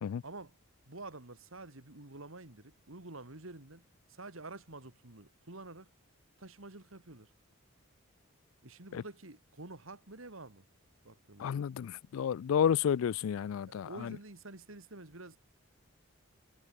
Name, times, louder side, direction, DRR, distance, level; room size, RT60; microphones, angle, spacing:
voice 1, 0.2-0.6 0.9-5.9 6.4-7.3 8.6-10.7 11.0-11.7 13.6-15.4, right 2 dB, 70° right, 2.5 m, -49 dB
voice 2, 11.4-14.1, left 8 dB, 75° left, 0.3 m, -31 dB
head